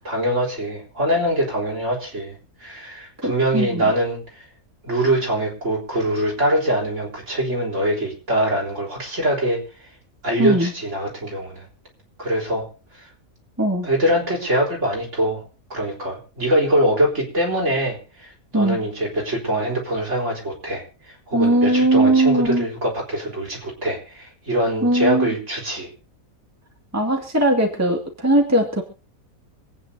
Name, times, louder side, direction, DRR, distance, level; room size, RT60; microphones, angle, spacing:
voice 1, 0.0-2.4 2.6-4.5 4.8-9.9 10.2-11.7 12.2-12.7 12.9-13.0 13.8-15.4 15.7-20.8 21.3-25.9, right 1 dB, 55° right, -2 dB, 4.2 m, -23 dB
voice 2, 3.2-3.9 10.4-10.7 13.6-13.9 18.5-18.8 21.3-22.7 24.8-25.3 26.9-28.8, right 1 dB, 10° right, 1 dB, 2.1 m, -19 dB
26.5 x 9.2 x 2.8 m, 0.33 s
omnidirectional pair, 1.5 m